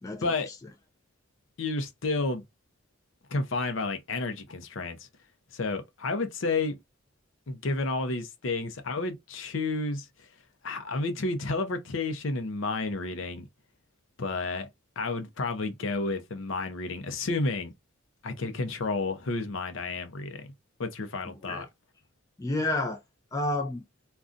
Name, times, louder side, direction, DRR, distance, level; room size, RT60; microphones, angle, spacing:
voice 1, 0.0-0.6 21.4-21.7 22.4-23.0 23.3-23.8, left 2 dB, 15° left, 0.4 m, -30 dB
voice 2, 1.6-2.4 3.3-5.0 5.5-6.8 7.5-10.1 10.6-13.5 14.2-14.7 15.0-17.7 18.2-20.5 20.8-21.7, left 3 dB, 60° left, 0.6 m, -31 dB
2.5 x 2.3 x 3.7 m
head